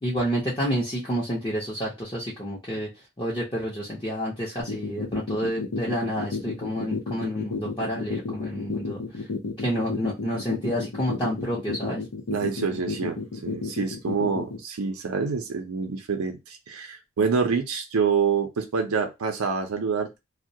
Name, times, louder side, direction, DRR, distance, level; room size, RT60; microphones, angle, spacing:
voice 1, 0.0-2.9 3.2-9.3 9.6-12.0, equal, 20° left, 0.6 m, -29 dB
sound 1, 4.6-14.6, left 4 dB, 80° left, 0.6 m, -31 dB
voice 2, 12.3-20.2, right 5 dB, 90° right, 0.5 m, -27 dB
2.2 x 2.0 x 2.6 m
head